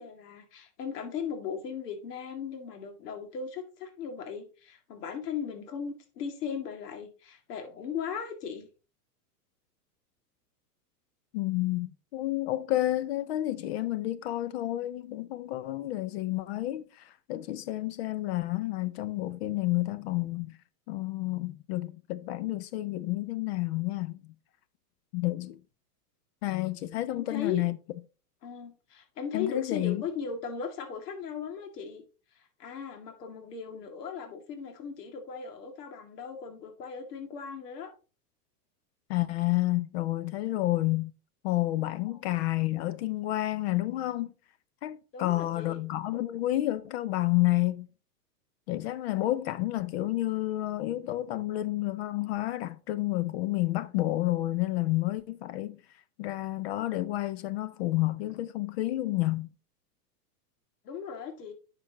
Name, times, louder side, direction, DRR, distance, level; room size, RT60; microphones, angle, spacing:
voice 1, 0.0-8.7 27.1-27.6 28.4-32.0 32.3-37.9 42.1-42.2 45.1-45.8 60.8-61.5, left 6 dB, 75° left, 2.2 m, -37 dB
voice 2, 11.3-20.6 20.9-24.3 25.1-25.6 26.4-27.8 29.3-30.0 39.1-41.1 41.4-44.3 44.8-47.9 48.7-55.8 56.2-59.5, left 16 dB, 45° left, 0.5 m, -30 dB
9.9 x 6.0 x 2.8 m
supercardioid pair, 140°, 47 cm